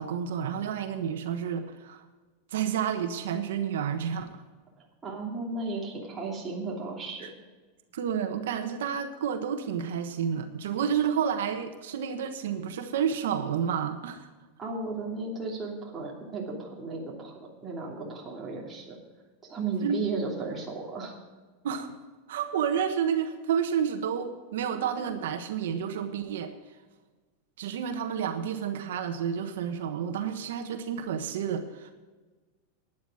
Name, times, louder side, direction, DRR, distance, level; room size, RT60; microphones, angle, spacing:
voice 1, 0.0-2.0 2.5-4.4 7.2-7.3 7.9-14.3 19.8-20.0 21.6-22.0 22.3-26.5 27.6-31.9, right 8 dB, 85° right, 7 dB, 1.3 m, -30 dB
voice 2, 4.8-7.3 14.6-19.0 19.4-21.2, right 3 dB, 15° right, -3 dB, 2.9 m, -35 dB
12.0 x 10.0 x 5.0 m, 1.3 s
supercardioid pair, 160°, 0 cm